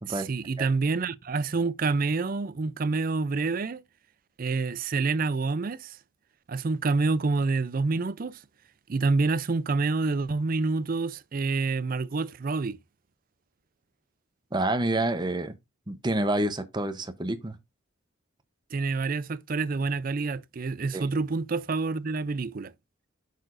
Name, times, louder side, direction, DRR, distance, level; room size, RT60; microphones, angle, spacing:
voice 1, 0.1-3.8 4.4-6.0 6.5-8.4 8.9-12.8 18.7-22.7, right 3 dB, 40° right, 0.4 m, -27 dB
voice 2, 14.5-15.5 15.9-17.6 20.9-21.0, right 1 dB, 20° right, 0.8 m, -28 dB
7.9 x 6.6 x 2.5 m
head